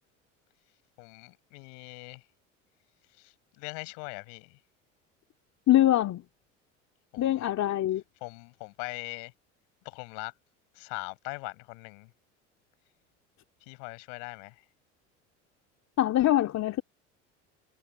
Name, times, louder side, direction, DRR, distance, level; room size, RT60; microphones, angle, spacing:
voice 1, 1.0-2.2 3.2-4.6 7.1-7.5 8.2-9.3 9.8-10.3 10.8-12.1 13.7-14.6, left 40 dB or more, 65° left, 6.1 m, -41 dB
voice 2, 5.7-6.2 7.2-8.0 16.0-16.8, left 13 dB, 45° left, 2.6 m, -23 dB
hypercardioid pair, 70°, 37 cm